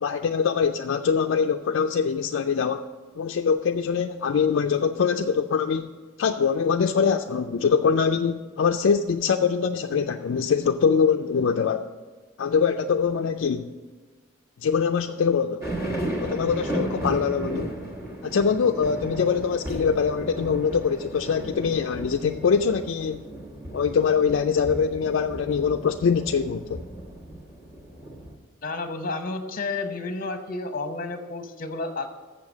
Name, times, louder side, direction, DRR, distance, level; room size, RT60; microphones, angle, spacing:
voice 1, 0.0-2.9 3.2-5.9 6.2-11.9 12.4-13.7 14.6-15.7 16.2-17.8 18.2-23.2 23.7-26.8, left 6 dB, 65° left, 5 dB, 0.3 m, -23 dB
sound 1, 15.6-28.3, right 1 dB, 15° right, 1.3 m, -35 dB
voice 2, 28.6-32.1, left 3 dB, 45° left, 7 dB, 0.8 m, -31 dB
7.2 x 6.6 x 7.2 m, 1.3 s
head